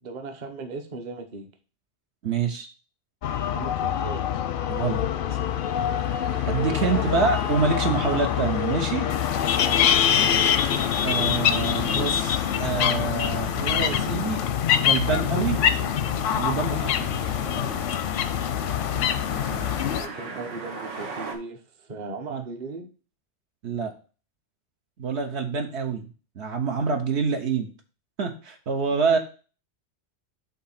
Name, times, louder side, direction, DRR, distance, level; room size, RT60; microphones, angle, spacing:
voice 1, 0.0-1.5 3.5-4.2 6.7-7.5 9.6-10.7 11.0-11.4 16.6-17.0 19.9-22.9, right 3 dB, 40° right, 5 dB, 0.9 m, -38 dB
voice 2, 2.2-2.7 4.7-5.1 6.5-9.1 11.0-14.4 14.7-15.6 16.4-16.9 22.3-22.4 23.6-23.9 25.0-26.1 26.4-27.7 28.2-29.2, right 5 dB, 65° right, 4 dB, 1.1 m, -26 dB
sound 1, 3.2-20.0, left 9 dB, 60° left, 0.6 m, -26 dB
sound 2, 5.2-21.4, right 4 dB, 85° right, 1.4 m, -39 dB
sound 3, 9.1-20.1, left 9 dB, 85° left, 0.9 m, -28 dB
7.7 x 2.9 x 5.7 m, 0.36 s
omnidirectional pair, 1.2 m